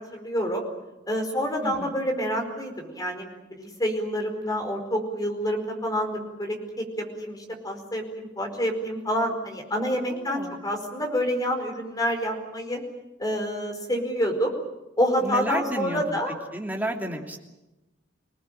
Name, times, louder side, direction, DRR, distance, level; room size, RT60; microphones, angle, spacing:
voice 1, 0.1-0.6 1.1-12.8 13.2-14.5 15.0-16.3, equal, 20° left, 4 dB, 4.8 m, -28 dB
voice 2, 1.6-2.0 10.3-10.6 15.2-16.2 16.5-17.4, right 1 dB, 10° right, 1 dB, 2.9 m, -31 dB
26.5 x 19.0 x 9.1 m, 0.99 s
head